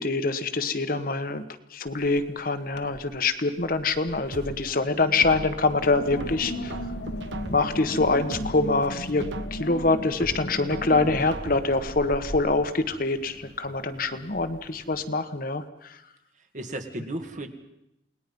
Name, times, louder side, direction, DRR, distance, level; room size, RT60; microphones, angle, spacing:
voice 1, 0.0-1.4 1.7-6.7 7.5-16.0, left 3 dB, 50° left, 9 dB, 1.3 m, -25 dB
Wind, 1.9-2.3 2.7-3.2 3.6-15.0, left 1 dB, 65° left, 1.5 m, -38 dB
sound 1, 4.3-5.7 6.2-7.8 8.2-9.7 10.2-11.8 12.2-12.3, right 2 dB, 80° right, 1.4 m, -38 dB
voice 2, 16.4-17.5, right 1 dB, 40° right, 5 dB, 2.1 m, -35 dB
29.0 x 19.5 x 5.4 m, 0.85 s
head